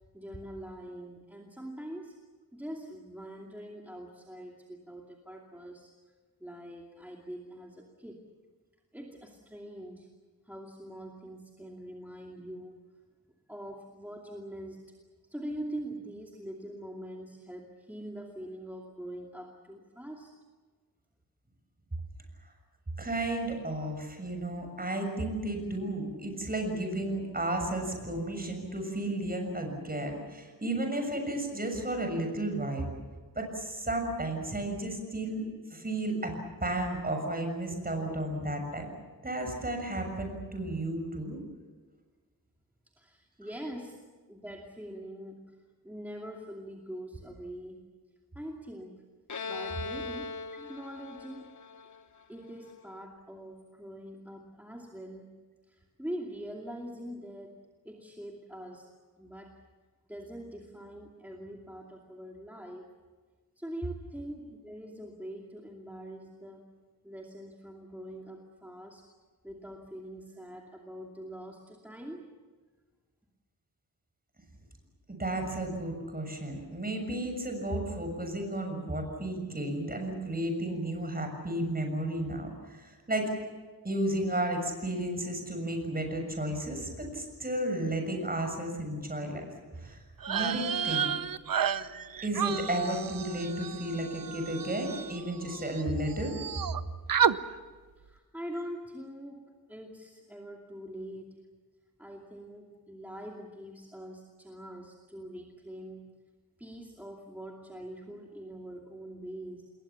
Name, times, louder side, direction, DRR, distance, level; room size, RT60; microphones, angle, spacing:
voice 1, 0.1-2.2 2.5-5.9 6.4-8.3 8.9-10.1 10.4-12.8 13.5-14.9 15.3-20.3 43.0-44.0 44.3-45.6 45.8-47.8 48.3-49.0 49.4-51.5 52.3-55.4 55.7-58.9 59.2-59.6 60.1-62.9 63.6-66.7 67.0-69.1 69.4-72.3 98.0-99.4 99.7-101.4 102.0-106.1 106.6-109.7, right 1 dB, 5° right, 0 dB, 2.6 m, -43 dB
voice 2, 23.0-32.9 33.4-35.4 35.7-38.9 39.2-41.4 75.1-83.3 83.8-89.4 89.7-90.0 90.3-91.1 92.2-96.4, right 1 dB, 25° right, 4 dB, 6.8 m, -33 dB
Bowed string instrument, 49.3-52.8, left 4 dB, 55° left, 1.4 m, -40 dB
sound 1, 90.2-95.8 96.1-96.8 97.1-97.4, right 8 dB, 65° right, 0.9 m, -31 dB
28.5 x 21.5 x 7.2 m, 1.4 s
wide cardioid pair, 115°, 36 cm